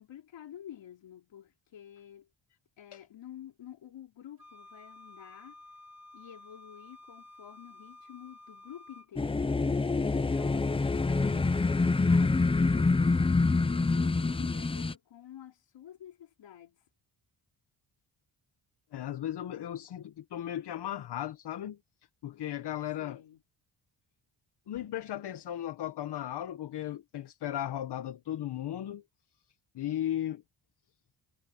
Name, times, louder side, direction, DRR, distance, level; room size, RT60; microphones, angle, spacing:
voice 1, 0.0-2.3 2.8-5.6 6.1-9.5 10.1-16.8 23.0-23.4, left 10 dB, 80° left, 4.1 m, -50 dB
Wind instrument woodwind instrument, 4.4-9.1, left 2 dB, 45° right, 2.6 m, -52 dB
sound 1, 9.2-14.9, left 3 dB, 15° left, 0.5 m, -26 dB
voice 2, 18.9-21.8 22.2-23.2 24.7-29.0 29.7-30.4, left 11 dB, 65° left, 1.1 m, -36 dB
wide cardioid pair, 135°, 43 cm